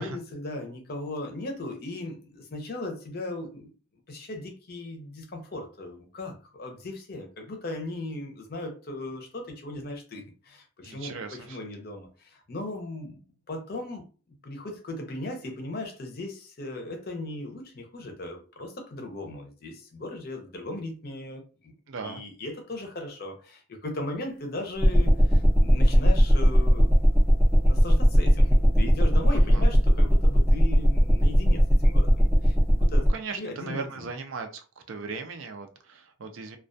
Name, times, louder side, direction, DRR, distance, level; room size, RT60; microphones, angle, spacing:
voice 1, 0.0-3.7 4.1-13.2 13.5-14.1 14.4-21.7 22.0-27.1 27.6-33.1 33.4-34.1, left 2 dB, 45° left, 0.5 m, -37 dB
voice 2, 10.8-11.6 21.9-22.2 29.5-29.6 33.1-36.6, right 4 dB, 70° right, 0.4 m, -37 dB
sound 1, 24.8-33.1, equal, 15° right, 0.4 m, -19 dB
2.2 x 2.2 x 2.5 m
head